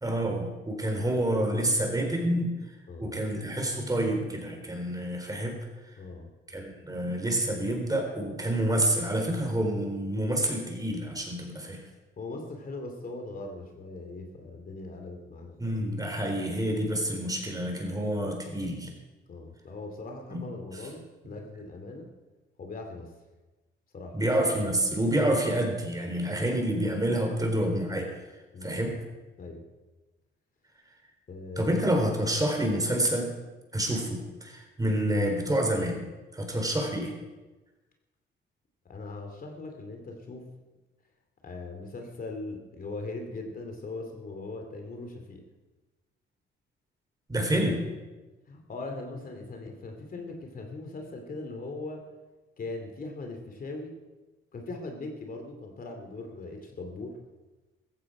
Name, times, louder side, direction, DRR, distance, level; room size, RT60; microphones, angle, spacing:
voice 1, 0.0-2.5 3.0-5.6 5.9-6.0 6.5-11.8 15.6-18.9 20.3-20.4 24.1-28.1 28.6-28.9 31.6-33.3 33.7-36.0 36.3-37.1 47.3-47.8, right 1 dB, 20° right, 3 dB, 3.9 m, -28 dB
voice 2, 2.9-3.2 6.0-6.3 12.2-15.5 19.3-22.1 22.6-23.1 23.9-24.1 28.5-28.8 29.4-29.6 31.3-31.7 38.8-40.5 41.4-45.5 48.5-52.0 52.6-54.0 54.5-57.1, left 2 dB, 45° left, 3 dB, 2.5 m, -40 dB
15.0 x 14.5 x 4.9 m, 1.2 s
cardioid pair, 90°, 20 cm